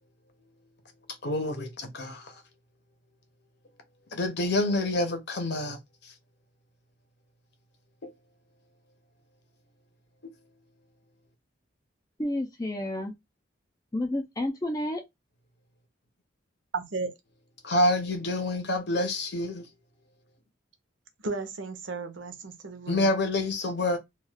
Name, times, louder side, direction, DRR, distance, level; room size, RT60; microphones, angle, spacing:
voice 1, 1.2-2.3 4.1-5.8 17.6-19.6 22.9-24.0, left 1 dB, 55° left, 0.7 m, -27 dB
voice 2, 12.2-13.1 13.9-15.0, left 1 dB, 20° left, 0.4 m, -30 dB
voice 3, 16.7-17.1 21.2-23.1, right 3 dB, 70° right, 0.7 m, -34 dB
2.3 x 2.3 x 3.2 m
head